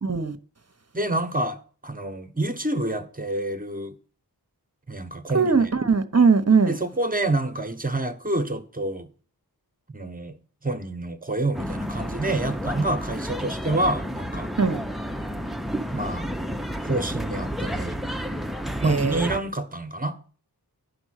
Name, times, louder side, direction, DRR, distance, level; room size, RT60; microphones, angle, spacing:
voice 1, 0.0-0.4 5.3-6.7 14.6-14.8 18.8-19.3, right 5 dB, 40° right, 1.0 m, -20 dB
voice 2, 0.9-3.9 4.9-5.7 6.7-9.1 9.9-10.3 10.6-14.5 15.9-16.3 16.8-18.0 18.8-20.2, right 2 dB, 20° right, 1.3 m, -28 dB
sound 1, 11.5-19.4, equal, ahead, 0.7 m, -31 dB
11.0 x 5.3 x 6.5 m
wide cardioid pair, 45°, 39 cm